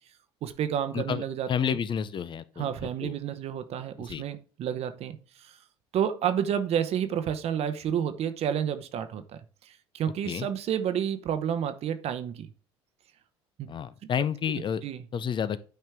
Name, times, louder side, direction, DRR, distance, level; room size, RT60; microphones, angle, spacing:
voice 1, 0.4-1.8 2.6-5.6 5.9-9.2 9.6-12.5 13.6-13.7 14.8-15.0, right 9 dB, 50° right, 0.9 m, -30 dB
voice 2, 0.9-3.1 4.0-4.2 10.2-10.5 13.7-14.8 15.1-15.6, left 8 dB, 40° left, 0.6 m, -30 dB
9.2 x 4.4 x 3.4 m
hypercardioid pair, 70°, 13 cm